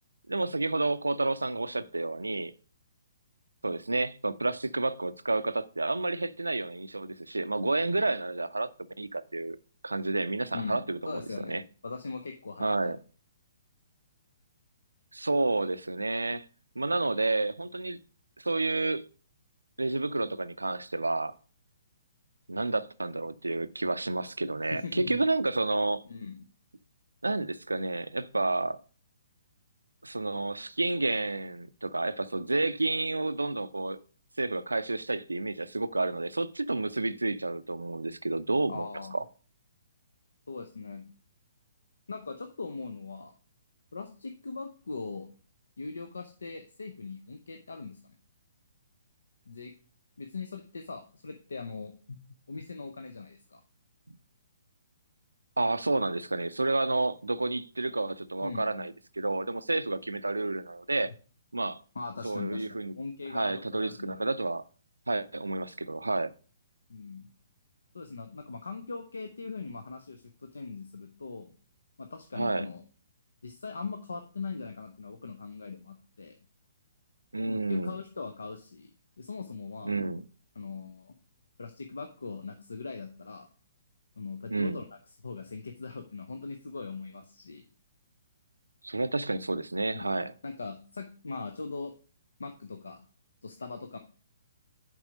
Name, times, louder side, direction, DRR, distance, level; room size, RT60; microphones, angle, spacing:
voice 1, 0.3-2.5 3.6-8.7 9.0-9.6 9.8-11.2 11.5-11.6 12.6-13.0 15.1-16.5 16.8-18.0 18.4-19.0 19.8-21.3 22.5-26.0 27.2-28.8 30.0-34.0 34.4-38.9 39.1-39.2 55.6-61.1 61.5-61.8 62.2-62.9 63.3-64.6 65.1-66.3 72.3-72.7 77.3-78.0 79.9-80.2 84.5-84.8 88.8-90.3, right 2 dB, 80° right, 0.4 m, -30 dB
voice 2, 11.1-12.9 24.7-25.2 26.1-26.4 38.7-39.2 40.5-41.0 42.1-43.3 43.9-45.3 45.8-48.0 49.5-49.7 50.2-52.2 52.5-53.6 58.4-58.9 61.0-61.1 61.9-62.7 62.9-64.3 66.9-67.3 67.9-71.5 72.0-72.8 73.4-76.4 77.5-78.9 79.2-79.9 80.6-81.1 81.6-83.5 84.2-84.9 85.2-87.6 89.9-90.1 90.4-91.9 92.4-93.0 93.4-94.0, left 4 dB, 70° left, 0.7 m, -40 dB
7.3 x 4.9 x 5.1 m
figure-of-eight pair, 125°, 0 cm